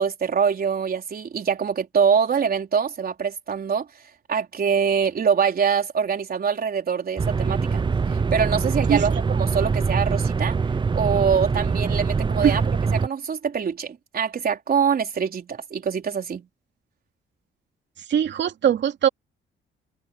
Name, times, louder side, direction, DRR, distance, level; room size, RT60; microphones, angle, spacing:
voice 1, 0.0-3.9 4.3-7.8 8.1-10.6 10.9-12.6 12.9-16.5, right 6 dB, 50° right, 4.3 m, -24 dB
sound 1, 7.2-13.1, right 5 dB, 25° right, 0.6 m, -23 dB
voice 2, 18.1-19.1, right 9 dB, 65° right, 2.7 m, -21 dB
cardioid pair, 90°, 20 cm